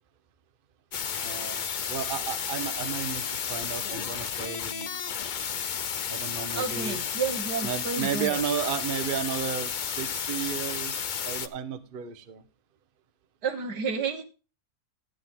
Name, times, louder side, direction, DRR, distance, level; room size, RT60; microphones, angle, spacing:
sound 1, 0.9-11.5, left 7 dB, 70° left, 0.4 m, -32 dB
voice 1, 1.2-5.0 6.1-7.1 7.6-12.4, right 8 dB, 40° right, 10 dB, 1.0 m, -33 dB
voice 2, 6.5-8.4 13.4-14.2, right 5 dB, 85° right, 7 dB, 2.0 m, -31 dB
13.0 x 9.4 x 3.7 m, 0.33 s
omnidirectional pair, 1.7 m